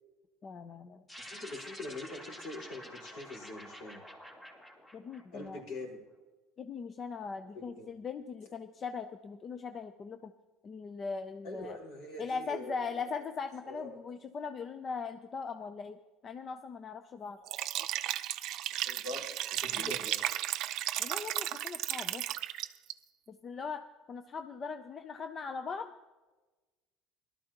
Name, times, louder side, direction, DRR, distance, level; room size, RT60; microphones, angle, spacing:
voice 1, 0.4-1.0 4.9-5.6 6.6-10.3 10.6-11.8 12.2-17.4 19.8-19.9 21.0-22.3 23.3-25.9, left 5 dB, 30° left, 10 dB, 0.5 m, -40 dB
sound 1, 1.1-5.8, equal, 15° left, 2.3 m, -49 dB
voice 2, 1.2-4.0 5.3-6.0 7.5-7.9 11.4-13.0 13.7-14.0 18.8-20.2, left 2 dB, 70° left, -2 dB, 4.6 m, -43 dB
Liquid, 17.4-22.9, right 14 dB, 60° right, 0.4 m, -34 dB
18.0 x 12.5 x 3.0 m, 1.2 s
cardioid pair, 130°, 0 cm